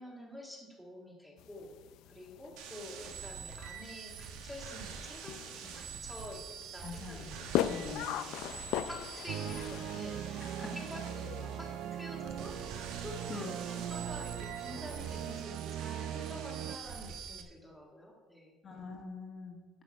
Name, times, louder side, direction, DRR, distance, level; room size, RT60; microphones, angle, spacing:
voice 1, 0.0-1.7 2.1-6.4 6.7-7.8 8.1-18.6, left 1 dB, ahead, -1 dB, 1.7 m, -48 dB
sound 1, 1.4-15.4, left 12 dB, 70° left, 0.4 m, -42 dB
sound 2, 2.6-17.4, right 7 dB, 90° right, 1.5 m, -46 dB
voice 2, 6.8-8.1 10.6-10.8 13.3-13.5 18.6-19.8, left 4 dB, 30° left, 1 dB, 1.5 m, -44 dB
sound 3, 9.3-16.8, right 10 dB, 50° right, 0.4 m, -40 dB
11.0 x 8.1 x 5.4 m, 1.3 s
cardioid pair, 170°, 0 cm